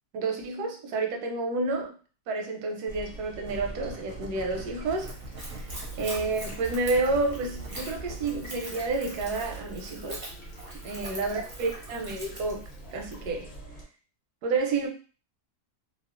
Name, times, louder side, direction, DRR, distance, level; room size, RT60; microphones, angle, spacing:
voice 1, 0.1-1.9 2.3-5.2 6.0-10.2 10.8-12.6 12.9-13.5 14.4-14.9, right 3 dB, 85° right, 3 dB, 1.1 m, -30 dB
sound 1, 2.9-13.8, right 2 dB, 45° left, 0.8 m, -44 dB
sound 2, 3.5-12.0, right 2 dB, 70° right, 0.7 m, -44 dB
Splash splatter / Trickle dribble, 4.9-13.3, right 1 dB, 35° right, 0.3 m, -44 dB
2.8 x 2.1 x 2.4 m, 0.37 s
omnidirectional pair, 1.6 m